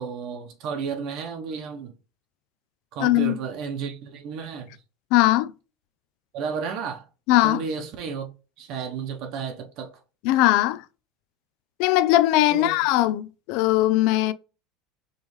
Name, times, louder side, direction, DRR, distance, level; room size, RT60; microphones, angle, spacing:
voice 1, 0.0-1.9 2.9-4.8 6.3-7.0 7.4-8.3 8.6-9.9 12.5-12.8, right 6 dB, 50° right, 0.9 m, -32 dB
voice 2, 3.0-3.4 5.1-5.5 7.3-7.6 10.2-10.8 11.8-14.3, left 16 dB, 60° left, 0.3 m, -20 dB
5.3 x 3.1 x 3.1 m
supercardioid pair, 155°, 0 cm